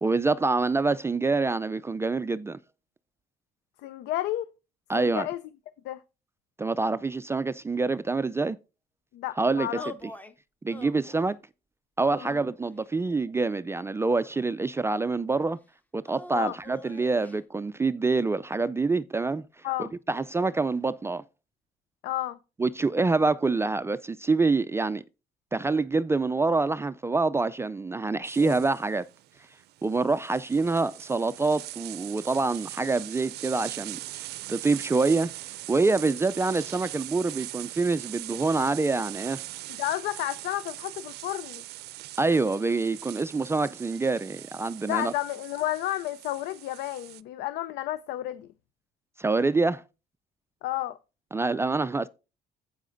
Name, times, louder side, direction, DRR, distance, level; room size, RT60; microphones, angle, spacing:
voice 1, 0.0-2.6 4.9-5.3 6.6-8.6 9.4-9.7 10.6-11.4 12.0-15.6 15.9-21.2 22.6-25.0 25.5-29.0 29.8-34.0 34.5-35.3 35.7-39.4 42.2-45.1 49.2-49.8 51.3-52.1, right 3 dB, 15° right, 0.4 m, -26 dB
voice 2, 3.8-4.5 5.0-5.4 5.8-6.0 9.1-9.8 12.2-12.4 16.3-16.6 19.6-19.9 22.0-22.4 28.4-28.5 39.7-41.6 44.8-48.5 50.6-51.0, left 14 dB, 85° left, 0.6 m, -31 dB
sound 1, 9.8-10.3 10.7-11.4 12.0-12.9 13.7-14.7 16.0-17.4, left 2 dB, 10° left, 1.1 m, -45 dB
sound 2, 28.2-47.2, right 17 dB, 75° right, 0.5 m, -41 dB
12.5 x 8.5 x 2.6 m
cardioid pair, 110°, 17 cm